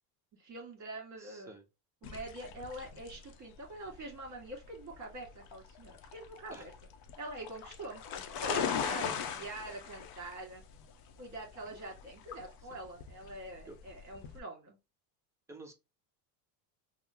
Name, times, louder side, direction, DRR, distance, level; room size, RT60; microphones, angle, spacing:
voice 1, 0.3-1.6 2.0-6.7 7.2-10.6 11.2-14.8, right 2 dB, 35° right, 1.8 m, -45 dB
voice 2, 1.2-1.6 6.5-6.7 13.7-13.8 15.5-15.7, right 2 dB, 5° right, 0.6 m, -50 dB
sound 1, 2.0-14.4, left 8 dB, 50° left, 0.6 m, -40 dB
3.6 x 2.0 x 2.8 m
supercardioid pair, 115°, 49 cm